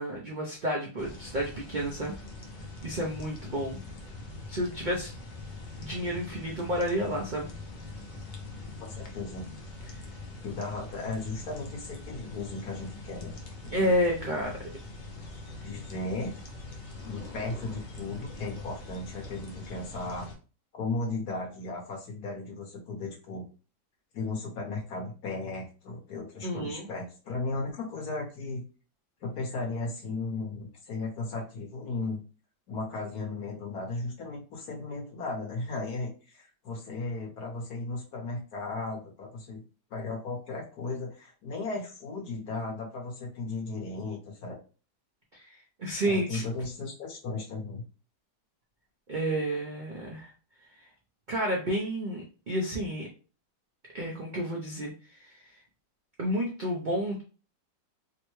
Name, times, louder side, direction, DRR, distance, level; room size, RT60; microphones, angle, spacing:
voice 1, 0.0-2.1 2.8-3.8 4.5-5.1 5.8-7.5 9.9-10.0 13.7-14.7 26.4-26.9 45.3-46.4 49.1-50.3 50.8-50.9 51.3-53.1 53.9-55.6 56.2-57.2, equal, 60° right, -2 dB, 0.5 m, -31 dB
sound 1, 1.0-20.4, left 2 dB, 85° left, 0.4 m, -43 dB
voice 2, 8.8-9.6 10.4-13.4 13.6-14.0 15.6-16.3 17.0-20.3 20.7-23.4 24.1-28.6 29.2-32.2 32.7-39.6 39.9-44.6 46.0-47.8, left 3 dB, 65° left, -1 dB, 1.5 m, -36 dB
3.6 x 2.2 x 3.0 m, 0.35 s
omnidirectional pair, 1.8 m